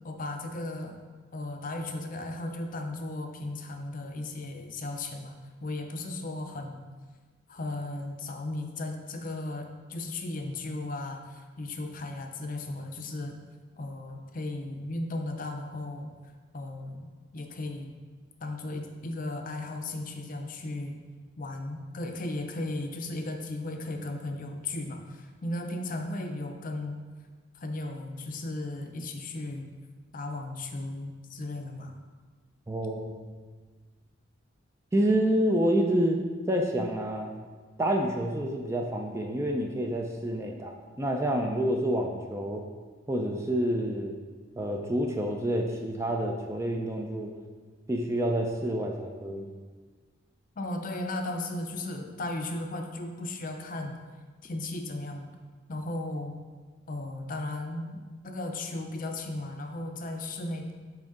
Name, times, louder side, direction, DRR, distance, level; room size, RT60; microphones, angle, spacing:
voice 1, 0.0-1.0 1.3-5.3 5.6-6.9 7.5-13.3 13.8-16.1 16.5-17.9 18.4-21.0 21.4-27.0 27.5-29.7 30.1-31.9 50.6-53.9 54.4-55.3 55.7-56.4 56.9-60.7, left 2 dB, 40° left, 4 dB, 0.5 m, -36 dB
voice 2, 32.7-33.2 34.9-36.2 36.5-37.3 37.8-42.7 43.1-44.2 44.6-47.3 47.9-49.5, right 1 dB, 15° right, 2 dB, 0.4 m, -28 dB
6.4 x 4.4 x 3.7 m, 1.4 s
head